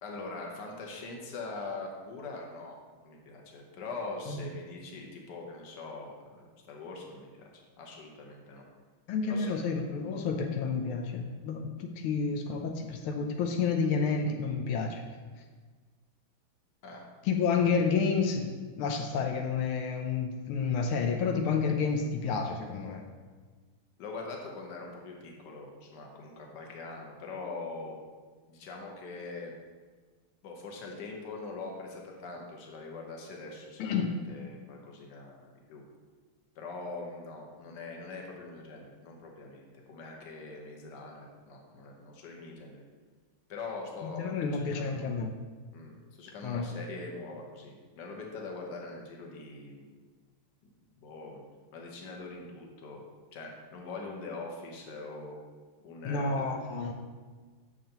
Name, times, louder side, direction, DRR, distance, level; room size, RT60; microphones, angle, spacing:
voice 1, 0.0-7.5 7.8-8.7 9.3-9.6 16.8-17.1 24.0-28.0 28.5-29.5 30.4-34.0 34.3-35.8 36.5-42.8 43.5-45.2 45.7-49.9 51.0-51.4 51.7-53.0 53.3-55.4 55.8-56.4, left 3 dB, 60° left, 0 dB, 1.7 m, -43 dB
voice 2, 9.1-15.0 17.2-23.0 33.8-34.2 44.0-45.4 46.4-46.7 56.0-56.9, left 5 dB, 85° left, 3 dB, 1.6 m, -30 dB
9.2 x 6.8 x 3.0 m, 1.4 s
omnidirectional pair, 2.3 m